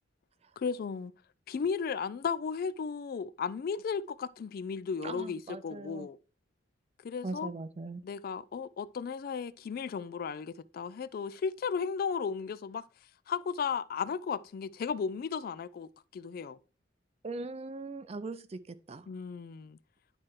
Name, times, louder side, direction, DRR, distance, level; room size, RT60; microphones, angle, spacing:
voice 1, 0.6-1.1 1.5-6.2 7.0-7.5 8.0-12.8 13.3-16.6 19.1-19.8, left 6 dB, 50° left, 0.3 m, -35 dB
voice 2, 5.0-6.1 7.2-8.0 17.2-19.1, right 3 dB, 35° right, 0.4 m, -40 dB
10.5 x 4.4 x 3.1 m
head